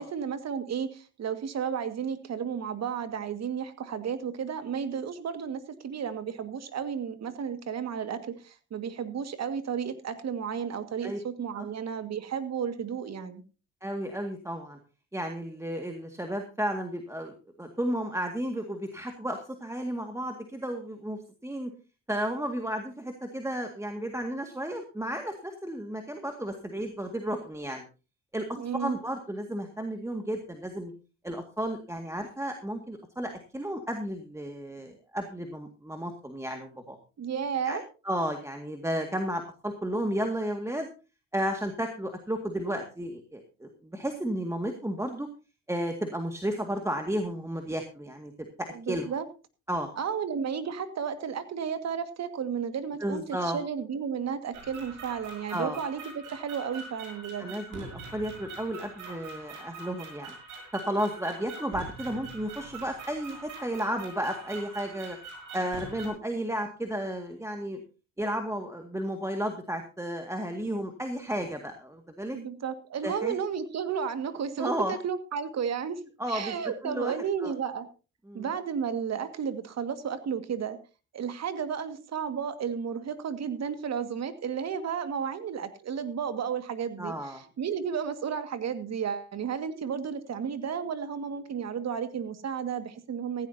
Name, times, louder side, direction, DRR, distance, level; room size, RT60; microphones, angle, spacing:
voice 1, 0.0-13.4 28.6-29.0 37.2-37.8 48.7-49.3 50.0-57.5 72.3-76.0 76.3-77.9 78.3-80.8 81.1-93.5, right 7 dB, 60° right, 10 dB, 2.0 m, -33 dB
voice 2, 13.8-14.8 15.1-21.7 22.1-27.8 28.3-30.9 31.2-37.0 37.6-37.8 38.0-40.9 41.3-45.3 45.7-48.3 48.6-49.1 49.7-49.9 53.0-53.6 55.5-55.8 57.4-60.3 60.7-65.2 65.5-67.8 68.2-72.4 73.0-73.3 74.6-75.0 76.2-76.6 76.8-77.1 77.4-77.5 78.3-78.5 87.0-87.4, equal, 10° right, 4 dB, 2.0 m, -33 dB
sound 1, 54.5-66.1, right 3 dB, 85° right, 6.2 m, -44 dB
15.5 x 15.5 x 2.8 m, 0.33 s
cardioid pair, 90°, 30 cm